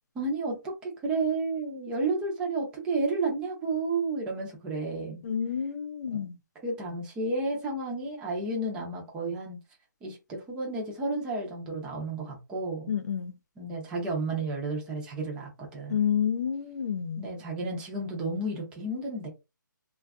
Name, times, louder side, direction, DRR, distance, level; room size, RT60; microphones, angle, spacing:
voice 1, 0.1-5.2 6.1-6.2 6.6-9.6 10.0-12.9 13.6-16.0 17.2-19.3, right 3 dB, 10° right, 0.6 m, -32 dB
voice 2, 5.2-6.4 12.9-13.4 15.9-17.3, left 8 dB, 50° left, 0.4 m, -29 dB
2.5 x 2.3 x 2.3 m
hypercardioid pair, 160°, 11 cm